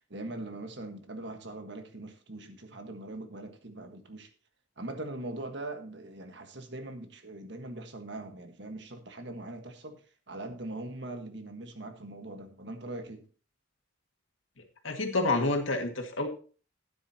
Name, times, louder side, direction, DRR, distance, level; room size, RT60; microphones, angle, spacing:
voice 1, 0.1-4.3 4.8-10.0 10.3-13.3, right 2 dB, 60° right, 6 dB, 1.5 m, -41 dB
voice 2, 14.8-16.3, left 2 dB, 85° left, 3 dB, 2.0 m, -28 dB
12.5 x 9.7 x 2.9 m, 0.38 s
head